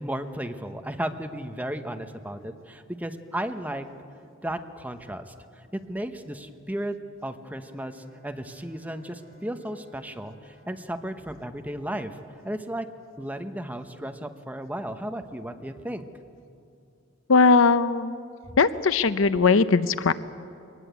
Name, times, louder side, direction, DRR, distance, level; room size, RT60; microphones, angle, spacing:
voice 1, 0.0-3.9 4.4-5.3 5.7-6.9 7.2-12.2 12.4-12.9 13.2-16.1, right 1 dB, 10° right, 7 dB, 1.0 m, -34 dB
Bowed string instrument, 7.6-12.8, equal, 45° right, 7.8 m, -57 dB
voice 2, 17.3-18.2 18.6-20.1, left 4 dB, 70° left, 14 dB, 0.7 m, -19 dB
23.5 x 19.5 x 8.2 m, 2.5 s
head